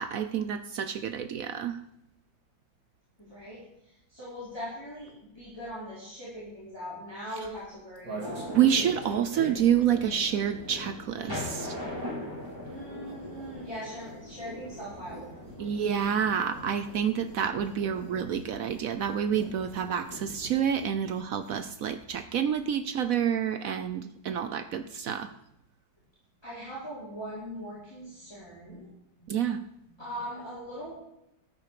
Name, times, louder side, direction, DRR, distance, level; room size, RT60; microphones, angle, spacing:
voice 1, 0.0-1.8 8.5-11.8 15.6-25.3 29.3-29.6, right 8 dB, 70° right, 10 dB, 0.8 m, -28 dB
voice 2, 3.2-8.5 12.6-15.5 26.4-29.2 29.9-30.9, equal, 10° left, -10 dB, 4.6 m, -41 dB
sound 1, 7.4-11.1 11.3-22.2 22.5-22.6 22.8-23.1, right 2 dB, 50° right, 2.8 m, -47 dB
sound 2, 8.2-20.6, left 1 dB, 10° right, 4.5 m, -42 dB
13.5 x 9.2 x 4.9 m, 0.84 s
omnidirectional pair, 2.0 m